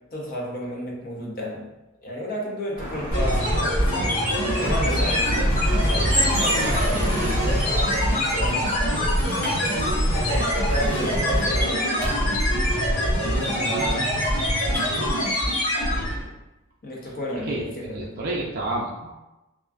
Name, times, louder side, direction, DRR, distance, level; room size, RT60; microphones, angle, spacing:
voice 1, 0.1-1.7 2.0-4.2 4.6-9.0 10.1-12.2 13.3-13.6 16.2-16.3 16.8-18.2, equal, 40° left, -2 dB, 0.5 m, -32 dB
sound 1, 2.8-11.7, equal, 20° right, 1.0 m, -30 dB
sound 2, 3.1-16.3, equal, 75° left, 1.2 m, -23 dB
sound 3, 6.7-7.4 9.4-10.2 12.0-12.8 14.7-14.9, right 1 dB, 10° left, 0.8 m, -38 dB
voice 2, 13.6-14.1 16.0-16.1 17.5-17.6 17.9-19.1, right 2 dB, 45° right, -4 dB, 0.4 m, -30 dB
2.4 x 2.2 x 2.3 m, 0.98 s
head